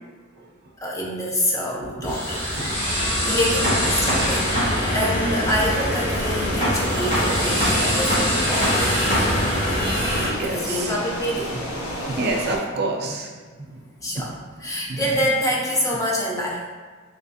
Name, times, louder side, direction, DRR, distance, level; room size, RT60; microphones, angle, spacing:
voice 1, 0.8-2.5 2.8-8.9 10.4-11.6 14.0-16.7, equal, 15° left, -3 dB, 0.4 m, -26 dB
sound 1, 2.1-10.3, equal, 35° left, 1.5 m, -22 dB
sound 2, 5.4-12.6, left 1 dB, 80° left, 0.7 m, -32 dB
voice 2, 10.4-10.9 12.2-13.3 13.7-13.8 14.9-15.0, right 2 dB, 50° right, 1 dB, 0.4 m, -27 dB
3.3 x 2.9 x 2.7 m, 1.5 s
head